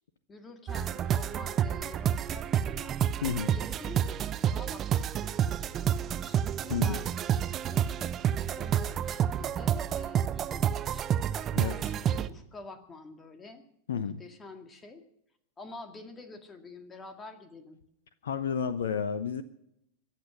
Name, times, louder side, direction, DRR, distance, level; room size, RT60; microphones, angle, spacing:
voice 1, 0.3-3.0 3.5-8.1 8.5-11.1 11.6-13.7 13.9-15.0 15.6-17.8, left 3 dB, 20° left, 7 dB, 2.1 m, -48 dB
sound 1, 0.7-12.3, right 9 dB, 30° right, 0.8 m, -29 dB
voice 2, 3.2-3.5 6.7-7.0 11.5-11.8 13.9-14.2 18.2-19.4, left 7 dB, 65° left, 13 dB, 0.9 m, -31 dB
23.0 x 8.7 x 6.1 m, 0.75 s
figure-of-eight pair, 90°, 0 cm